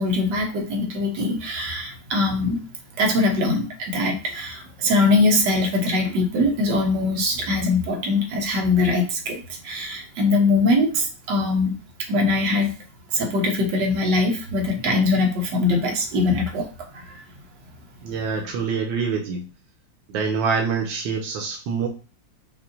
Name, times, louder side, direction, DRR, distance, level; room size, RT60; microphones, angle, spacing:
voice 1, 0.0-2.6 3.0-11.7 12.1-12.7 13.1-16.7 16.9-17.2, left 2 dB, 70° right, 2 dB, 1.5 m, -22 dB
voice 2, 18.0-19.5 20.1-21.9, right 5 dB, 90° right, 2 dB, 1.3 m, -25 dB
5.4 x 2.5 x 2.5 m, 0.36 s
omnidirectional pair, 2.0 m